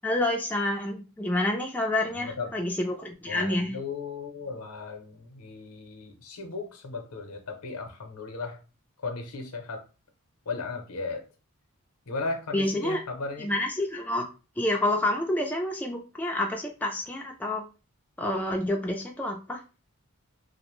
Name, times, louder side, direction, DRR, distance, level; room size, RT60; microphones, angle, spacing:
voice 1, 0.0-3.7 12.5-13.0 13.4-14.3 14.6-17.6 18.2-19.6, left 1 dB, 5° left, 1 dB, 0.3 m, -28 dB
voice 2, 2.1-2.5 3.3-8.6 9.0-9.9 10.5-11.2 12.1-13.5, left 3 dB, 90° left, 5 dB, 0.7 m, -36 dB
2.4 x 2.0 x 3.0 m, 0.32 s
head